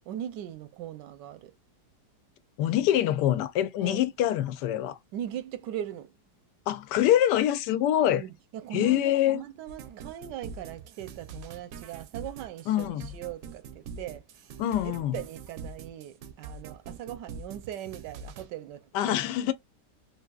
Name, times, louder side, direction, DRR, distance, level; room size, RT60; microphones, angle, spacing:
voice 1, 0.0-1.5 3.8-4.1 5.1-6.2 8.1-19.2, right 11 dB, 85° right, 1.3 m, -40 dB
voice 2, 2.6-5.0 6.7-8.2 8.7-9.4 12.7-13.1 14.6-15.1 18.9-19.5, left 12 dB, 80° left, 1.2 m, -25 dB
sound 1, 9.7-18.5, right 5 dB, 70° right, 0.8 m, -43 dB
3.6 x 2.6 x 2.3 m
omnidirectional pair, 1.8 m